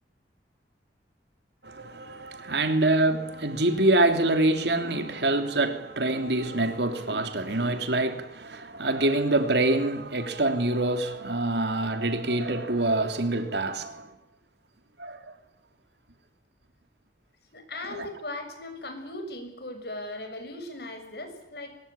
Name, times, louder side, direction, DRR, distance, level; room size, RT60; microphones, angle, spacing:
voice 1, 1.6-14.1 15.0-15.2 18.0-18.1, right 2 dB, 70° right, 3.1 m, -25 dB
voice 2, 17.5-21.8, left 1 dB, 60° left, 6.6 m, -38 dB
23.5 x 21.5 x 9.0 m
head